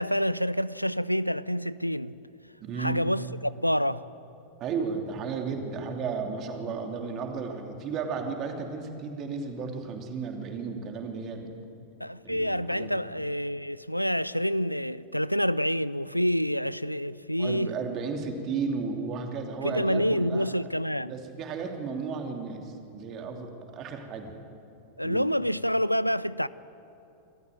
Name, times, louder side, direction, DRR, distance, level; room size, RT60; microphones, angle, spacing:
voice 1, 0.0-2.1 2.8-4.1 12.0-17.7 19.6-21.1 25.0-26.5, equal, 90° left, 0.4 m, -27 dB
voice 2, 2.6-3.0 4.6-11.5 12.2-12.9 17.4-20.5 21.0-24.3 25.0-25.2, right 5 dB, 35° right, 2.9 m, -34 dB
27.0 x 14.0 x 9.3 m
figure-of-eight pair, 90°, 0 cm